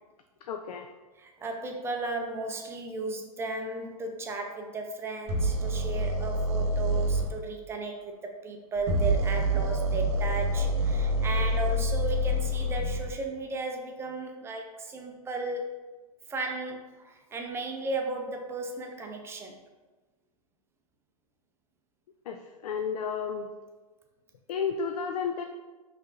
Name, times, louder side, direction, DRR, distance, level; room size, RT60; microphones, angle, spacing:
voice 1, 0.5-0.9 22.3-23.5 24.5-25.4, left 6 dB, 80° left, 6 dB, 0.4 m, -32 dB
voice 2, 1.2-15.7 16.3-19.5, right 2 dB, 15° right, 2 dB, 0.5 m, -35 dB
sound 1, 5.3-7.3 8.8-13.1, right 1 dB, 30° right, 1.1 m, -27 dB
5.2 x 3.2 x 2.5 m, 1.2 s
hypercardioid pair, 125°, 20 cm